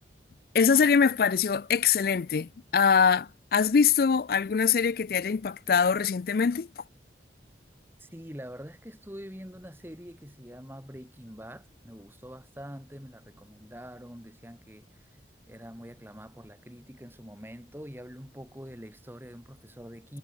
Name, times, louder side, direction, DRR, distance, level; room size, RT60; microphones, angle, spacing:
voice 1, 0.5-6.7, left 6 dB, 55° left, 0.4 m, -23 dB
voice 2, 8.0-15.1 15.5-20.2, equal, 10° right, 7.4 m, -45 dB
head